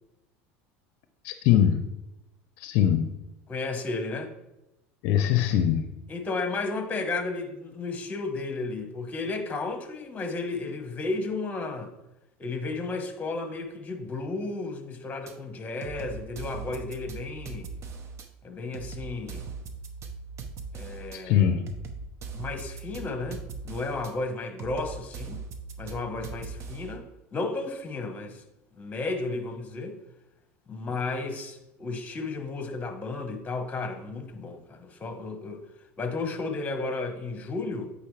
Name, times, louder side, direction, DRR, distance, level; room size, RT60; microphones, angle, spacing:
voice 1, 1.2-1.9 2.6-3.2 5.0-5.9 21.1-21.6, left 10 dB, 65° left, 0.5 m, -22 dB
voice 2, 3.5-4.3 6.1-11.9 12.4-17.7 18.4-19.5 20.7-21.5 22.3-25.4 25.8-27.1 27.3-28.4 28.7-29.9 30.7-35.6 36.0-37.9, left 3 dB, 20° left, 1.2 m, -33 dB
sound 1, 15.3-15.4 15.8-18.3 18.7-21.2 21.7-24.1 24.6-27.0, right 4 dB, 45° right, 0.8 m, -40 dB
8.4 x 4.1 x 3.3 m
supercardioid pair, 100°, 7 cm